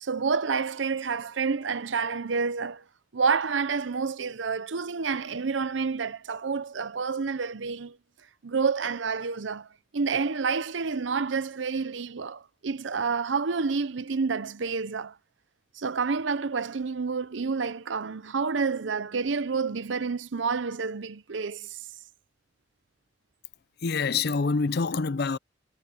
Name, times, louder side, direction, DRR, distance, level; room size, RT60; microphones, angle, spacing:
voice 1, 0.0-2.8 3.1-8.0 8.4-9.7 9.9-15.2 15.7-21.9, right 5 dB, 90° right, 0.7 m, -29 dB
voice 2, 23.8-25.4, left 4 dB, 60° left, 0.6 m, -26 dB
head